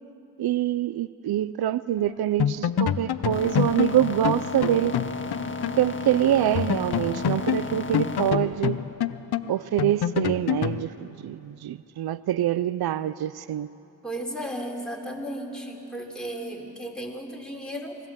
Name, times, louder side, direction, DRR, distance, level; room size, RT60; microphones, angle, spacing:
voice 1, 0.4-4.9 5.8-8.8 9.5-13.7, right 12 dB, 80° right, 0.5 m, -25 dB
sound 1, 2.0-2.1 2.4-5.8 6.1-6.2 6.6-10.8, left 9 dB, 90° left, 0.7 m, -27 dB
sound 2, 3.3-8.3, left 3 dB, 30° left, 1.7 m, -33 dB
voice 2, 14.0-18.0, right 1 dB, ahead, 3.5 m, -34 dB
26.0 x 19.5 x 7.4 m
cardioid pair, 65°, 37 cm